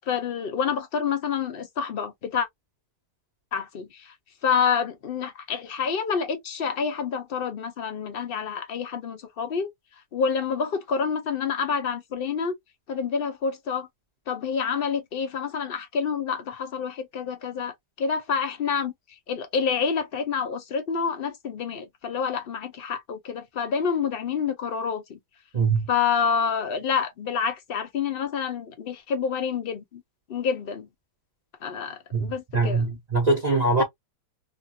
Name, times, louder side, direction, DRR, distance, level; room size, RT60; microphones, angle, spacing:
voice 1, 0.1-2.5 3.5-4.1 4.4-9.7 10.1-12.5 12.9-13.9 14.3-18.9 19.3-25.2 25.9-30.0 30.3-30.9 31.6-32.8, left 6 dB, 70° left, 0.5 m, -28 dB
voice 2, 25.5-25.9 32.1-33.8, right 3 dB, 40° right, 0.6 m, -23 dB
2.9 x 2.3 x 2.6 m
omnidirectional pair, 1.8 m